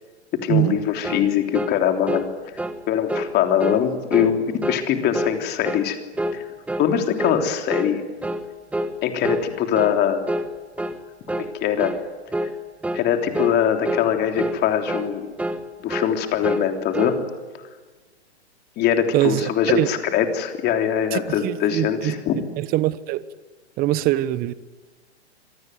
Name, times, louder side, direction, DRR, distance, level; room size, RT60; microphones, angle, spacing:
voice 1, 0.4-2.3 2.9-6.0 6.3-6.5 6.8-8.0 9.0-10.2 11.3-12.0 12.9-15.3 15.8-17.2 18.8-22.4, left 9 dB, 30° left, 3.3 m, -22 dB
sound 1, 1.0-1.3 1.5-1.8 2.1-2.3 2.6-2.8 3.1-3.3 3.6-3.8 4.1-4.3 4.6-4.9 5.1-5.4 5.6-5.9 6.2-6.4 6.7-6.9 7.2-7.4 7.7-7.9 8.2-8.5 8.7-8.9 9.2-9.5 9.7-10.0 10.3-10.5 10.8-11.0 11.3-11.5 11.8-12.0 12.3-12.5 12.8-13.1 13.3-13.6 13.9-14.1 14.4-14.6 14.9-15.1 15.4-15.6 15.9-16.1 16.4-17.2, right 1 dB, 5° right, 1.2 m, -27 dB
voice 2, 19.1-19.5 19.7-19.9 21.1-22.1 22.6-23.2 23.8-24.5, right 15 dB, 25° right, 1.0 m, -22 dB
26.0 x 19.0 x 9.4 m
hypercardioid pair, 125°, 34 cm